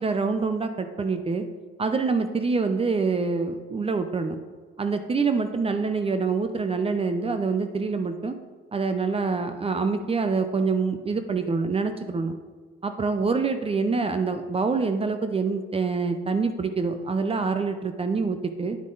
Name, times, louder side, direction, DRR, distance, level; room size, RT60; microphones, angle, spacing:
voice 1, 0.0-1.5 1.8-4.4 4.8-8.4 8.7-12.4 12.8-18.8, right 4 dB, 30° right, 8 dB, 0.7 m, -26 dB
9.6 x 7.2 x 3.9 m, 1.5 s
cardioid pair, 90°, 20 cm